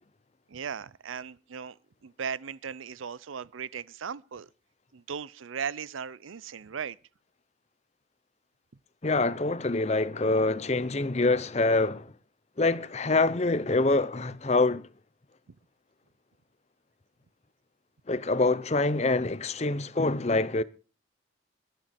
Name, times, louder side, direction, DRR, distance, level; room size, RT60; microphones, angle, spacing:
voice 1, 0.5-4.5 4.9-7.0 15.5-15.6, right 6 dB, 90° right, 0.6 m, -37 dB
voice 2, 9.0-12.1 12.6-14.9 18.1-20.6, left 3 dB, 35° left, 0.6 m, -25 dB
21.5 x 9.1 x 4.3 m
head